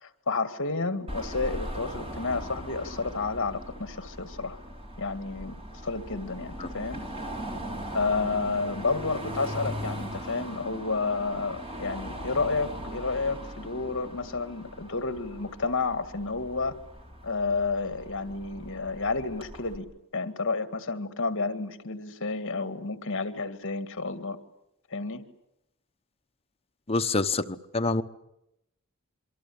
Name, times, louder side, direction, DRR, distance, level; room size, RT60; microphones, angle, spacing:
voice 1, 0.0-4.6 5.0-7.0 7.9-16.8 17.2-19.9 20.1-24.4 24.9-25.2, left 3 dB, 60° left, 9 dB, 2.0 m, -30 dB
Car passing by / Traffic noise roadway noise / Engine, 1.1-19.8, equal, 25° right, 4.3 m, -39 dB
voice 2, 26.9-28.0, left 3 dB, 25° left, 7 dB, 1.0 m, -26 dB
27.0 x 24.5 x 8.7 m, 0.83 s
head